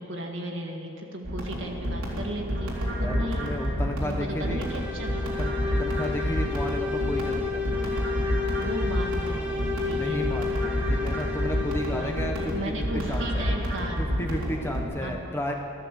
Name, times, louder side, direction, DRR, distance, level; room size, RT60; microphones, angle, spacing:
voice 1, 0.0-3.5 4.0-5.2 8.6-10.3 11.9-14.0 15.0-15.1, right 1 dB, 55° right, 1 dB, 1.9 m, -35 dB
sound 1, 1.2-14.8, equal, 90° right, 3.4 m, -29 dB
voice 2, 2.9-4.7 5.4-8.0 9.9-13.5 14.0-15.5, equal, 10° left, 2 dB, 0.9 m, -33 dB
sound 2, 4.3-12.7, left 5 dB, 5° right, 1.4 m, -32 dB
13.5 x 13.5 x 7.6 m, 2.8 s
head